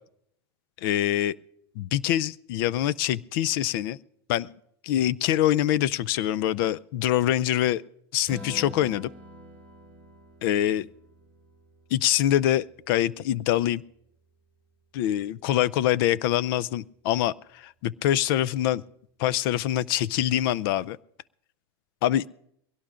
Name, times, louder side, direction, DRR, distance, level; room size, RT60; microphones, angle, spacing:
voice 1, 0.8-1.4 1.8-4.0 4.3-4.5 4.8-7.8 8.1-9.1 10.4-10.9 11.9-13.8 14.9-18.8 19.2-21.0 22.0-22.2, left 12 dB, 60° left, 23 dB, 0.4 m, -24 dB
Strum, 8.3-14.6, equal, 10° left, 2.7 m, -47 dB
22.5 x 17.0 x 2.5 m, 0.72 s
supercardioid pair, 130°, 13 cm